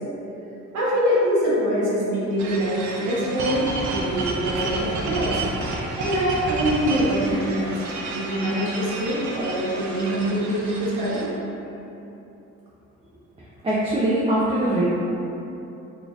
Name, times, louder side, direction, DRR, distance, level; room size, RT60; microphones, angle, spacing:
voice 1, 0.7-5.4 6.0-7.7 8.1-11.3, equal, 85° right, -7 dB, 1.1 m, -24 dB
sound 1, 2.4-11.3, right 2 dB, 70° right, 0.6 m, -30 dB
voice 2, 13.6-14.8, right 1 dB, 20° right, -9 dB, 0.6 m, -22 dB
4.0 x 3.2 x 2.4 m, 3.0 s
cardioid pair, 90°, 30 cm